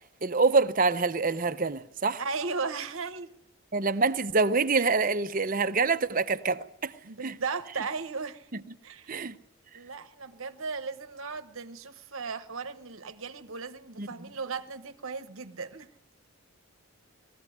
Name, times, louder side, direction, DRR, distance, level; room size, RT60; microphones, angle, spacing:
voice 1, 0.2-2.2 3.7-6.9 7.2-7.3 9.1-9.4 14.0-14.1, right 4 dB, 40° right, 0.7 m, -26 dB
voice 2, 2.2-3.3 7.0-8.5 8.8-9.1 9.7-15.9, right 4 dB, 65° right, 1.0 m, -36 dB
20.5 x 15.0 x 9.3 m
head